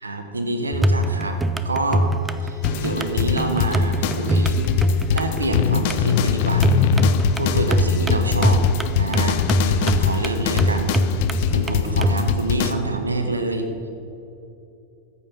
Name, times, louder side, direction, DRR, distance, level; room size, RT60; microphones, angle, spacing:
voice 1, 0.0-1.4 1.6-2.1 2.4-4.6 5.1-6.7 7.4-8.6 9.0-10.9 11.5-13.9, right 2 dB, 80° right, 6 dB, 1.4 m, -26 dB
sound 1, 0.7-12.2, equal, 10° right, 0.7 m, -23 dB
sound 2, 2.6-12.7, left 9 dB, 50° left, 0.7 m, -23 dB
14.5 x 8.6 x 5.5 m, 2.8 s
figure-of-eight pair, 90°, 0 cm